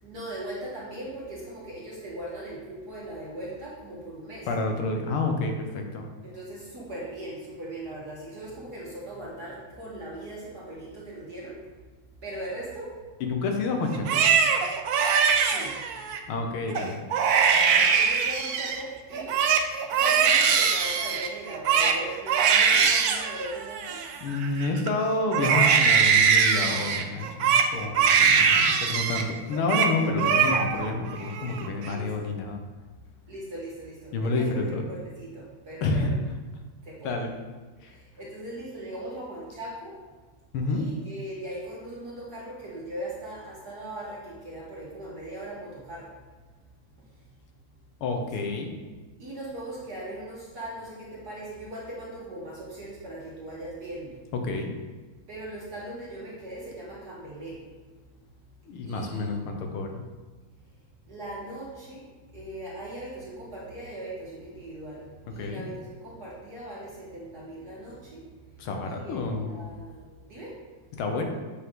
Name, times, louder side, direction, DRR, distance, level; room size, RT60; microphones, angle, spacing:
voice 1, 0.0-4.5 6.2-11.6 12.2-13.0 15.3-15.8 17.5-19.4 20.0-24.1 31.8-32.4 33.3-36.2 36.8-37.3 37.9-40.0 40.7-46.1 49.2-54.2 55.3-57.6 58.9-59.3 61.1-62.1 62.3-68.3 68.8-70.6, right 1 dB, 50° right, -6 dB, 1.8 m, -39 dB
voice 2, 4.5-6.1 13.2-14.2 16.3-17.0 24.2-32.6 34.1-34.8 35.8-36.1 37.0-37.3 37.8-37.9 40.5-40.8 48.0-48.7 54.4-54.7 58.7-60.0 65.4-65.6 68.6-69.5 71.0-71.2, left 3 dB, 80° left, 3 dB, 1.8 m, -29 dB
Crying sobbing, 13.9-16.2 16.7-16.9 17.1-18.8 19.1-24.9 25.3-29.3 29.5-29.9 30.2-30.9 31.3-31.9, right 6 dB, 90° right, 0.8 m, -22 dB
7.6 x 5.7 x 3.7 m, 1.4 s
omnidirectional pair, 2.3 m